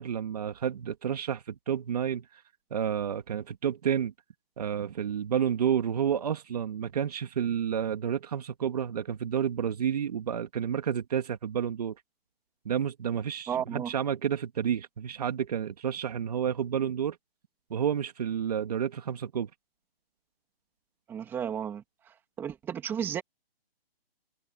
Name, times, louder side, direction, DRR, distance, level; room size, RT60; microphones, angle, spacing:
voice 1, 0.0-2.4 2.7-4.1 4.6-11.9 12.7-17.2 17.7-19.5, right 8 dB, 40° right, 2.3 m, -30 dB
voice 2, 13.5-13.9 21.1-23.2, right 8 dB, 5° right, 2.7 m, -34 dB
hypercardioid pair, 175°, 31 cm